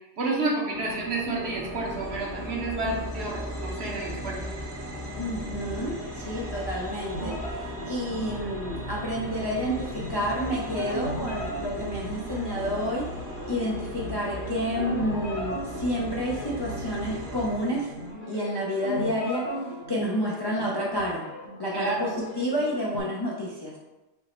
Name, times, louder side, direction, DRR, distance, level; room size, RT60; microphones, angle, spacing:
voice 1, 0.2-4.5 21.7-22.2, right 2 dB, 55° right, -2 dB, 1.0 m, -30 dB
sound 1, 0.7-18.1, equal, 15° right, 0.5 m, -37 dB
voice 2, 5.2-13.1 13.5-17.9 18.3-19.4 19.9-21.3 21.6-22.1 22.4-23.7, equal, 40° left, -5 dB, 0.3 m, -29 dB
sound 2, 7.1-23.0, equal, 55° left, 1.3 m, -38 dB
sound 3, 8.2-17.5, right 1 dB, 80° left, 1.2 m, -42 dB
5.4 x 2.0 x 4.2 m, 1.1 s
omnidirectional pair, 1.4 m